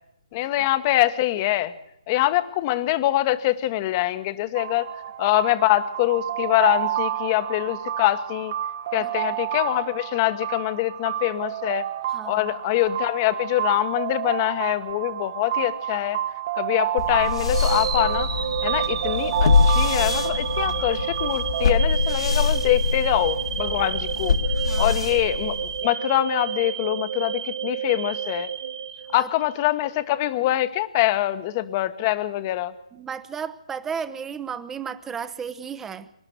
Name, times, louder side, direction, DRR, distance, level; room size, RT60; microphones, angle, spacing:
voice 1, 0.3-1.7 2.1-4.9 5.2-8.5 8.9-11.9 12.2-16.2 16.6-18.3 18.6-24.4 24.8-28.5 29.1-32.7, left 15 dB, 25° left, 13 dB, 1.3 m, -24 dB
sound 1, 4.5-21.8, right 12 dB, 35° right, 1.2 m, -30 dB
voice 2, 12.1-12.5 20.7-20.8 24.6-25.0 29.2-29.3 32.9-36.1, right 7 dB, 10° right, 12 dB, 1.0 m, -34 dB
sound 2, 17.0-25.9, left 5 dB, 60° left, 2.1 m, -24 dB
sound 3, 17.5-29.6, right 8 dB, 50° right, 2.5 m, -30 dB
25.0 x 12.0 x 8.6 m, 0.81 s
figure-of-eight pair, 145°, 3 cm